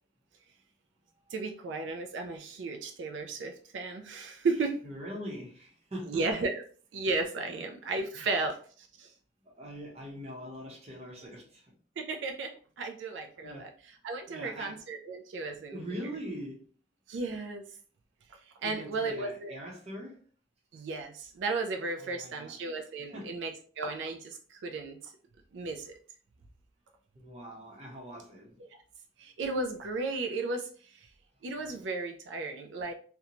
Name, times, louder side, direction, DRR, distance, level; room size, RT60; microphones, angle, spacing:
voice 1, 1.3-4.8 6.1-6.6 6.9-9.1 12.0-13.7 14.0-15.8 17.1-17.6 18.6-19.6 20.7-23.5 23.8-25.1 25.5-25.9 28.7-28.8 29.2-31.0 31.4-32.9, right 3 dB, 90° right, 0.4 m, -34 dB
voice 2, 4.8-6.3 7.5-7.6 8.1-8.3 9.4-11.7 13.4-13.7 14.3-14.8 15.7-16.7 18.6-20.2 22.0-23.3 27.1-28.6, equal, 35° right, 0.7 m, -43 dB
2.5 x 2.2 x 2.8 m
head